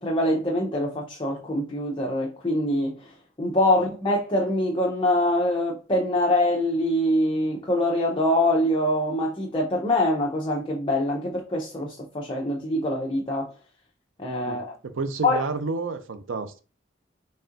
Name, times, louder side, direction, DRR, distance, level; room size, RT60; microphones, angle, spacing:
voice 1, 0.0-3.1 3.4-13.5 14.2-14.7 15.2-15.4, left 1 dB, 25° left, 0.7 m, -24 dB
voice 2, 14.4-16.6, right 4 dB, 90° right, 0.6 m, -30 dB
4.1 x 3.5 x 2.6 m
head